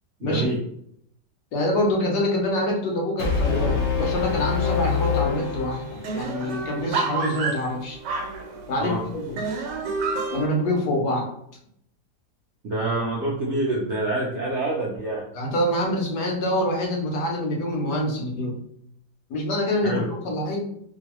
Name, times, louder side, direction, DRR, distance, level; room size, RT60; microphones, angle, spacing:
voice 1, 0.2-0.6 8.8-9.0 12.6-15.3 19.8-20.1, right 2 dB, 70° right, -3 dB, 0.6 m, -26 dB
voice 2, 1.5-8.0 8.7-9.4 10.3-11.3 15.3-18.6 19.3-20.6, left 1 dB, 75° left, 0 dB, 1.4 m, -25 dB
Brass instrument, 3.2-6.3, left 6 dB, 60° left, 0.8 m, -25 dB
sound 1, 4.7-5.1 5.4-5.5 5.7-8.9 9.4-10.5, right 4 dB, 90° right, 1.2 m, -29 dB
3.0 x 2.7 x 2.9 m, 0.70 s
omnidirectional pair, 1.8 m